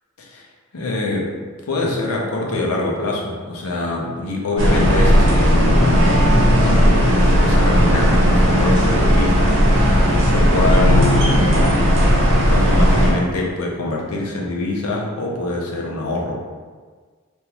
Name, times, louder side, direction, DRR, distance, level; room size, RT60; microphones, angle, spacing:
voice 1, 0.7-1.3 1.7-11.9 12.5-16.4, left 2 dB, 75° left, -2 dB, 0.6 m, -24 dB
sound 1, 4.6-13.1, equal, 60° right, 0.7 m, -15 dB
3.5 x 2.3 x 2.8 m, 1.5 s
head